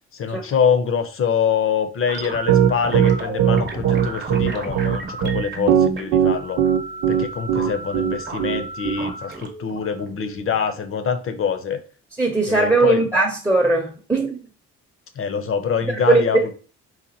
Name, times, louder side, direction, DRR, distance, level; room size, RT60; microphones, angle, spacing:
voice 1, 0.1-6.6 7.1-11.8 12.5-13.0 15.2-16.6, left 6 dB, 45° left, 0.7 m, -24 dB
sound 1, 2.1-11.0, right 3 dB, 35° right, 0.9 m, -33 dB
Piano, 2.5-8.9, right 9 dB, 90° right, 0.5 m, -18 dB
voice 2, 12.2-14.4 16.1-16.4, right 2 dB, 10° right, 0.7 m, -19 dB
4.0 x 2.4 x 2.8 m
cardioid pair, 90°, 30 cm